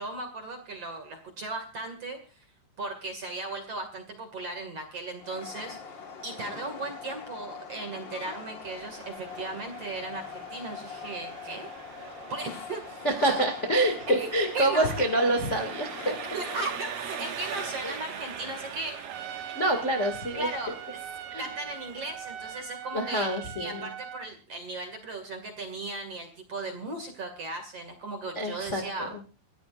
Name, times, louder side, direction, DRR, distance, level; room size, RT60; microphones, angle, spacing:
voice 1, 0.0-2.5 2.8-11.7 12.0-13.4 14.1-15.1 15.6-15.7 16.0-19.3 20.3-20.8 21.4-29.1, right 2 dB, 40° right, 5 dB, 2.6 m, -37 dB
Train, 5.2-17.1, left 6 dB, 90° left, 1.0 m, -43 dB
Engine, 8.6-22.6, right 7 dB, 55° right, 3.0 m, -42 dB
voice 2, 13.0-16.1 17.8-17.9 19.5-20.5 21.3-21.5 22.9-23.9 28.3-29.1, right 1 dB, 25° left, 3 dB, 1.6 m, -26 dB
Trumpet, 19.1-24.3, right 10 dB, 80° right, 3.6 m, -41 dB
28.5 x 13.5 x 2.6 m, 0.34 s
omnidirectional pair, 5.3 m